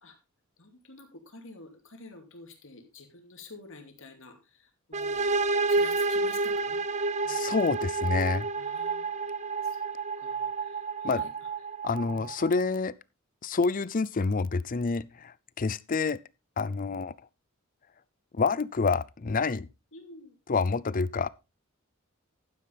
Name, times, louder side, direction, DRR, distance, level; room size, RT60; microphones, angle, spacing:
voice 1, 0.6-5.4 5.7-7.7 8.6-9.8 10.2-11.5 12.0-12.5 19.9-20.3, left 3 dB, 60° left, 2.8 m, -50 dB
sound 1, 4.9-12.6, right 3 dB, 30° right, 0.6 m, -30 dB
voice 2, 7.3-8.5 11.0-11.2 11.8-12.9 13.4-16.2 16.6-17.1 18.3-19.7 20.5-21.3, left 4 dB, 40° left, 0.5 m, -28 dB
11.5 x 9.7 x 3.4 m
head